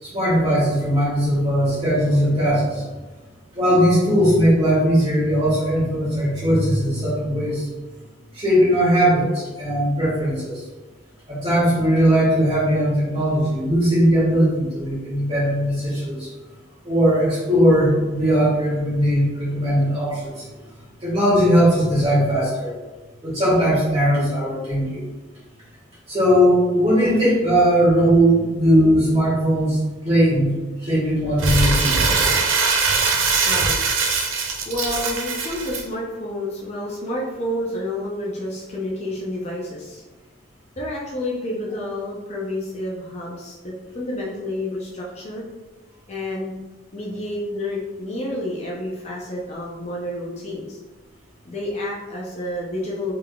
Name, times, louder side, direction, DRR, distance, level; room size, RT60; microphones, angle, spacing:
voice 1, 0.0-2.8 3.5-7.7 8.3-10.6 11.3-16.3 16.8-20.4 21.0-22.7 23.2-25.0 26.1-29.8 30.0-32.1, equal, 30° right, -7 dB, 1.5 m, -19 dB
Crumpling crinkling, 31.4-35.8, right 4 dB, 75° right, 0.6 m, -21 dB
voice 2, 33.0-40.0 40.8-45.4 46.1-46.5 46.9-50.8 51.4-53.1, left 1 dB, 35° left, -4 dB, 0.5 m, -30 dB
3.6 x 3.4 x 2.3 m, 1.2 s
head